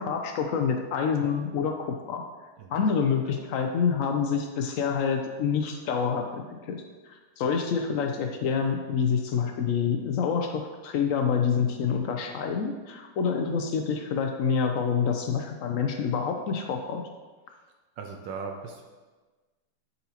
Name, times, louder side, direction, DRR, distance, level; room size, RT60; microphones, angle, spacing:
voice 1, 0.0-2.2 2.7-17.0, left 6 dB, 85° left, 4 dB, 0.7 m, -27 dB
voice 2, 3.0-3.4 18.0-18.8, right 5 dB, 75° right, 2 dB, 1.3 m, -39 dB
12.0 x 4.1 x 2.9 m, 1.3 s
omnidirectional pair, 2.0 m